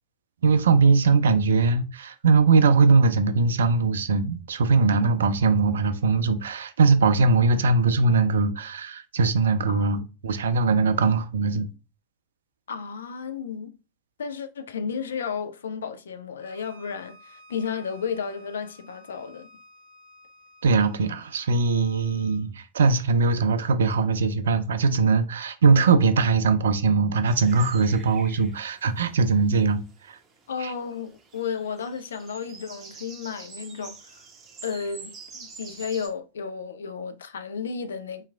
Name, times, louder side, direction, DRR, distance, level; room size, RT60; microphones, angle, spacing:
voice 1, 0.4-11.7 20.6-29.8 30.1-30.2 30.6-30.7, right 4 dB, 65° right, 0.4 m, -21 dB
voice 2, 9.7-10.1 12.7-13.8 14.2-19.5 30.5-34.2 34.6-38.3, left 6 dB, 65° left, 0.4 m, -33 dB
Bowed string instrument, 16.4-22.4, left 1 dB, 85° left, 1.9 m, -53 dB
sound 1, 27.3-36.1, right 5 dB, 30° right, 0.6 m, -47 dB
4.6 x 2.9 x 2.2 m
figure-of-eight pair, 90°, 0 cm